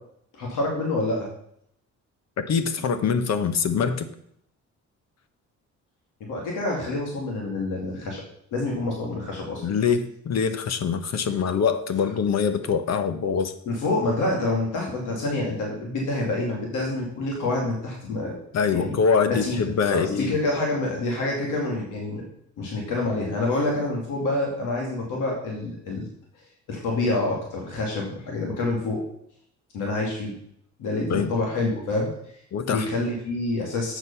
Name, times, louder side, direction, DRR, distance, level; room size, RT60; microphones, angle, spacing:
voice 1, 0.3-1.3 6.2-8.2 8.5-9.6 13.7-18.4 18.7-19.0 19.3-22.2 22.6-26.1 26.7-29.0 29.7-30.3 30.8-32.1 32.7-34.0, left 2 dB, 85° left, -1 dB, 2.5 m, -27 dB
voice 2, 2.4-4.1 9.6-13.5 18.5-20.3 31.1-31.3 32.5-32.9, left 6 dB, 60° left, 10 dB, 1.1 m, -24 dB
8.1 x 6.5 x 5.6 m, 0.70 s
cardioid pair, 90°, 30 cm